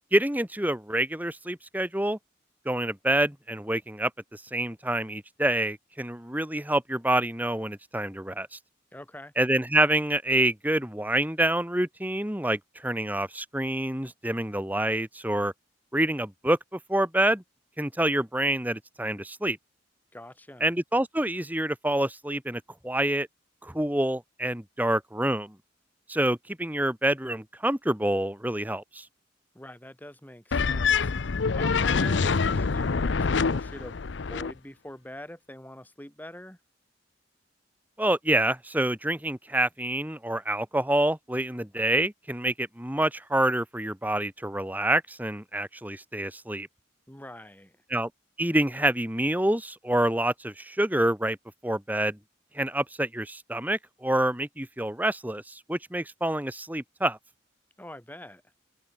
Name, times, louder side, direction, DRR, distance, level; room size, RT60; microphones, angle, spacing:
voice 1, 0.1-2.2 2.7-8.6 9.4-15.5 15.9-17.4 17.8-19.6 20.6-23.3 23.6-25.6 26.1-29.1 38.0-46.7 47.9-48.1 48.4-51.4 51.6-52.2 52.5-57.2, right 1 dB, 10° right, 2.3 m, -27 dB
voice 2, 8.9-9.3 20.1-20.7 29.5-31.1 31.5-34.0 34.3-36.6 47.1-47.8 57.8-58.4, left 1 dB, 10° left, 5.7 m, -44 dB
sound 1, 30.5-34.5, left 5 dB, 75° left, 0.7 m, -25 dB
head